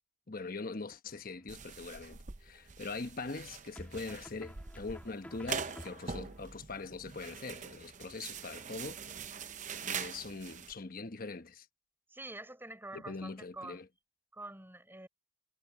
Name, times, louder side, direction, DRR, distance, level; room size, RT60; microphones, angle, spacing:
voice 1, 0.3-9.2 9.8-11.7 12.9-13.9, left 3 dB, 45° left, 1.1 m, -42 dB
sound 1, 1.1-1.7 3.7-6.4, equal, 10° left, 2.8 m, -51 dB
sound 2, 1.5-10.7, right 6 dB, 40° right, 0.8 m, -43 dB
voice 2, 12.1-13.8 14.3-15.1, right 2 dB, 10° right, 6.3 m, -46 dB
head